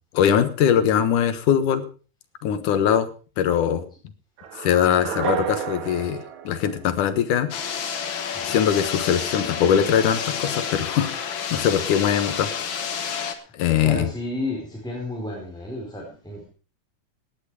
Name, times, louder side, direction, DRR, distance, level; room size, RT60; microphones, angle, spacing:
voice 1, 0.1-1.8 2.4-3.1 3.4-3.9 4.6-7.5 8.4-12.5 13.5-14.1, left 9 dB, 80° left, 11 dB, 2.8 m, -21 dB
sound 1, 4.4-7.5, right 9 dB, 70° right, 2.7 m, -31 dB
sound 2, 7.5-13.4, left 7 dB, 50° left, 1.7 m, -29 dB
voice 2, 13.8-16.5, left 2 dB, ahead, -3 dB, 4.3 m, -32 dB
17.5 x 10.5 x 4.8 m, 0.36 s
omnidirectional pair, 3.6 m